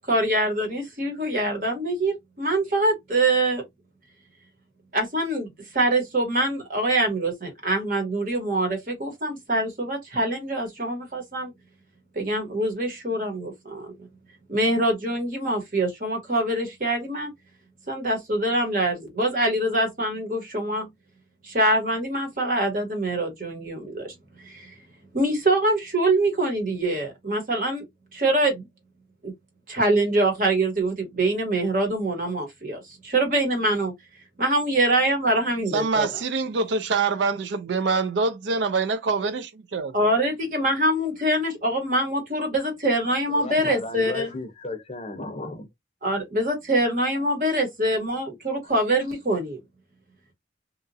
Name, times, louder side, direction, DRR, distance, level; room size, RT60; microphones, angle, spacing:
voice 1, 0.1-3.6 4.9-11.5 12.1-13.9 14.5-17.3 17.9-20.9 21.4-24.1 24.4-24.7 25.1-27.8 28.1-28.6 29.2-29.3 29.7-33.9 34.4-36.1 39.9-44.3 46.0-49.6, right 1 dB, 50° right, 1.2 m, -24 dB
voice 2, 35.7-40.1, right 4 dB, 85° right, 0.4 m, -25 dB
voice 3, 43.3-45.7 48.6-48.7, left 2 dB, 35° left, 0.6 m, -35 dB
2.8 x 2.4 x 2.6 m
head